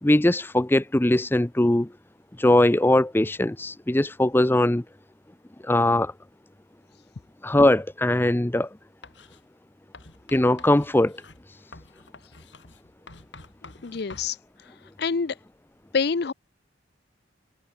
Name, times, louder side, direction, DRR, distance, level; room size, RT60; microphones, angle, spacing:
voice 1, 0.0-1.9 2.4-4.8 5.6-6.1 7.4-8.7 10.3-11.1, left 1 dB, 10° left, 0.6 m, -20 dB
Writing, 9.0-9.4 9.9-14.3, left 3 dB, 75° left, 5.6 m, -48 dB
voice 2, 13.6-14.4 15.0-15.4 15.9-16.3, left 5 dB, 55° left, 0.5 m, -26 dB
head